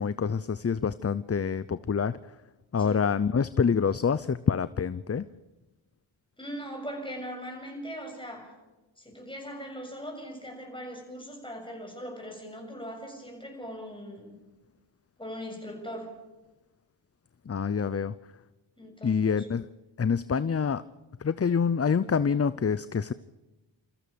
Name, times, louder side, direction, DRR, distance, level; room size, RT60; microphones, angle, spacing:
voice 1, 0.0-2.4 2.7-5.3 17.5-18.1 19.0-19.7 20.0-20.8 21.2-23.1, left 6 dB, 30° left, 15 dB, 0.7 m, -26 dB
voice 2, 6.4-8.5 9.0-14.3 15.2-16.1 18.8-19.5, equal, 10° left, 2 dB, 7.3 m, -40 dB
28.0 x 14.5 x 6.9 m, 1.1 s
cardioid pair, 50°, 47 cm